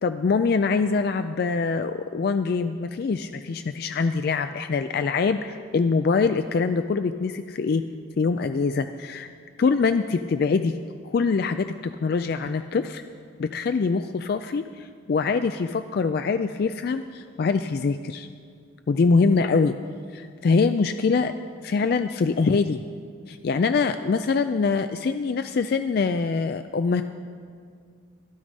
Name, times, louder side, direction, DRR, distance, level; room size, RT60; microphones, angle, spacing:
voice 1, 0.0-7.8 8.2-9.3 9.6-10.8 11.0-13.0 13.4-18.3 18.9-19.7 20.1-21.3 21.6-22.8 23.3-27.0, left 4 dB, 50° left, 9 dB, 0.3 m, -24 dB
12.0 x 12.0 x 5.3 m, 2.1 s
head